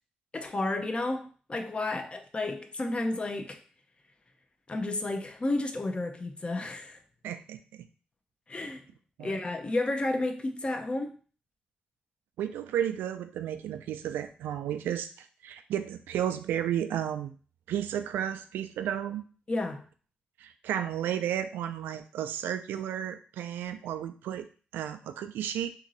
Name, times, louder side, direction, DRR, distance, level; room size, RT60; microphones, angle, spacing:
voice 1, 0.3-3.6 4.7-7.0 8.5-8.8 9.2-11.1 19.5-19.8, left 2 dB, 30° left, 5 dB, 0.7 m, -31 dB
voice 2, 7.2-7.9 9.2-9.4 12.4-17.3 17.7-19.2 20.4-24.5 24.7-25.7, right 10 dB, 90° right, 9 dB, 0.3 m, -33 dB
3.0 x 2.7 x 3.8 m, 0.39 s
cardioid pair, 60°, 3 cm